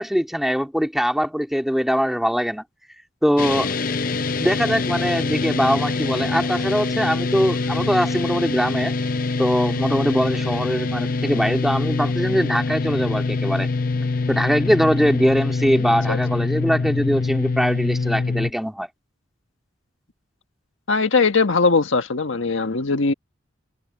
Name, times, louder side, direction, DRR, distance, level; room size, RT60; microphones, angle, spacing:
voice 1, 0.0-2.6 3.2-3.7 4.3-8.9 9.4-13.7 14.3-18.9, equal, ahead, 2.7 m, -22 dB
sound 1, 3.4-18.5, left 3 dB, 45° left, 0.6 m, -24 dB
voice 2, 15.8-16.2 20.9-23.1, left 4 dB, 80° left, 1.5 m, -20 dB
head